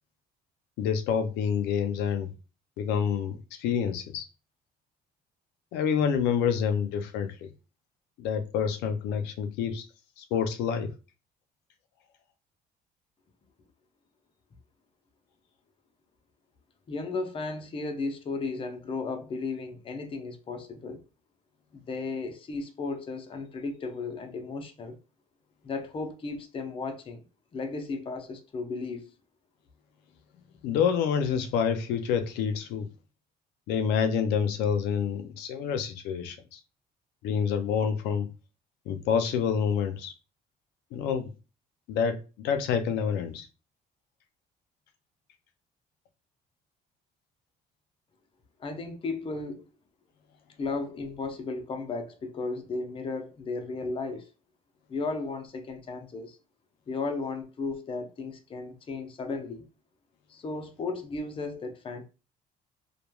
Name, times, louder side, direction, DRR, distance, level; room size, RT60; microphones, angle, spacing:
voice 1, 0.8-2.3 2.8-4.3 5.7-7.5 8.2-9.9 10.2-10.9 30.6-32.9 33.7-36.6 37.2-38.3 38.9-40.1 40.9-41.3 41.9-43.5, left 7 dB, 85° left, 0.4 m, -28 dB
voice 2, 16.9-21.0 21.7-25.0 25.6-27.2 27.5-29.1 48.6-49.6 50.6-54.3 54.9-56.4 56.9-59.7 60.3-62.0, left 3 dB, 30° left, 0.5 m, -35 dB
3.0 x 2.2 x 2.2 m
cardioid pair, 110°, 17 cm